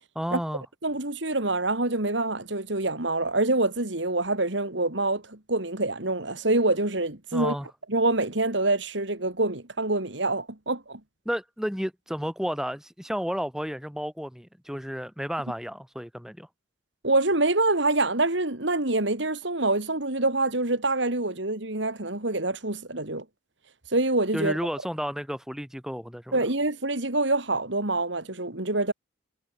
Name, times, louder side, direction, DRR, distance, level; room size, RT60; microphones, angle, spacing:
voice 1, 0.2-0.6 7.3-7.7 11.3-16.5 24.3-26.4, equal, 5° right, 3.7 m, -32 dB
voice 2, 0.8-7.5 7.9-11.0 17.0-23.2 23.9-24.6 26.3-28.9, right 2 dB, 70° right, 3.0 m, -26 dB
head